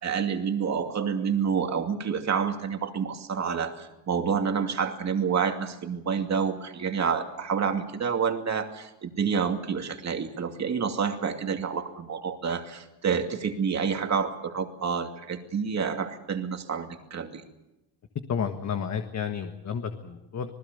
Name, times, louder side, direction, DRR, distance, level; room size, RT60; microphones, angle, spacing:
voice 1, 0.0-17.4, right 6 dB, 40° right, 5 dB, 2.6 m, -28 dB
voice 2, 18.3-20.5, left 7 dB, 40° left, 6 dB, 1.5 m, -31 dB
27.0 x 20.0 x 6.9 m, 0.95 s
cardioid pair, 145°, 43 cm